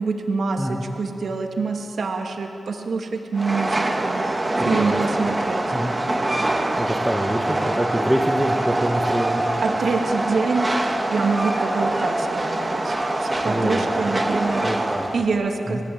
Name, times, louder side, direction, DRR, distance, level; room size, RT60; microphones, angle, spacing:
voice 1, 0.0-4.2 4.6-5.6 9.6-14.7 15.1-15.8, right 4 dB, 75° right, 2 dB, 2.5 m, -25 dB
Train, 3.3-15.3, right 1 dB, 30° right, 2.6 m, -24 dB
voice 2, 4.6-5.0 5.7-5.9 6.8-9.5 13.4-13.9 14.6-15.1 15.7-15.8, equal, 5° right, 0 dB, 2.2 m, -25 dB
27.0 x 19.0 x 8.9 m, 2.7 s
cardioid pair, 65°, 0 cm